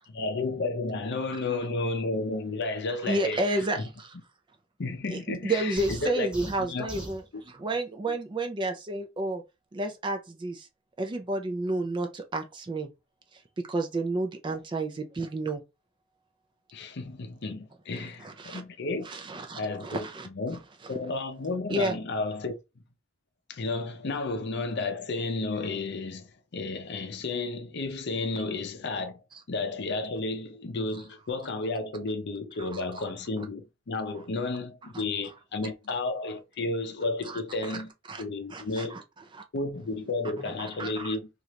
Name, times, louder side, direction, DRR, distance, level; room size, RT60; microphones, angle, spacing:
voice 1, 0.1-3.9 4.8-6.3 6.7-6.9 14.5-14.6 16.7-19.1 19.5-20.6 20.9-22.5 23.5-29.2 29.5-37.9 38.2-39.0 39.5-41.3, left 3 dB, 55° left, 0.6 m, -32 dB
voice 2, 3.0-4.1 5.1-9.4 9.7-10.7 11.0-12.9 13.6-15.6 17.9-18.6 19.0-20.3 21.7-22.0 32.7-32.8 37.2-37.8 38.1-38.2 38.5-39.0 39.3-39.4 40.5-41.1, right 2 dB, 25° right, 0.4 m, -31 dB
sound 1, 5.8-7.2, right 1 dB, 5° right, 1.0 m, -39 dB
3.1 x 2.5 x 2.8 m
head